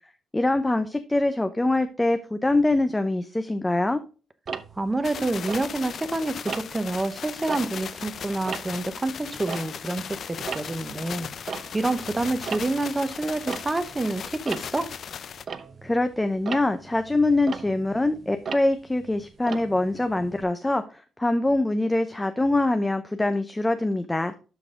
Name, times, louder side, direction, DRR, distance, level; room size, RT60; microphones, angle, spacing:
voice 1, 0.3-4.0 15.8-24.3, left 2 dB, 15° left, 8 dB, 0.6 m, -24 dB
Tick-tock, 4.5-6.1 6.5-6.9 7.3-10.1 10.3-20.4, right 6 dB, 45° right, 0.7 m, -38 dB
voice 2, 4.8-11.3 11.7-14.9, right 2 dB, 20° right, 11 dB, 0.9 m, -28 dB
sound 1, 5.0-15.4, left 8 dB, 55° left, 0.4 m, -37 dB
12.0 x 4.1 x 3.6 m, 0.35 s
cardioid pair, 90°, 0 cm